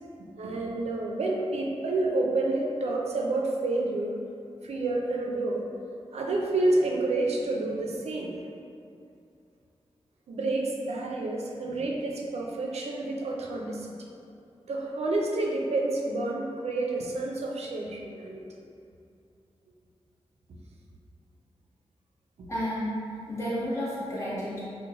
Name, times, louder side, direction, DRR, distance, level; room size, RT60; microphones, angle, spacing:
voice 1, 0.4-4.2 4.6-5.7 6.1-8.4 10.3-13.9 14.7-18.4 22.4-22.5, right 2 dB, 90° right, -1 dB, 0.4 m, -29 dB
voice 2, 22.5-22.9 23.3-24.6, equal, 25° left, -10 dB, 1.0 m, -31 dB
3.1 x 2.1 x 3.5 m, 2.5 s
wide cardioid pair, 130°, 11 cm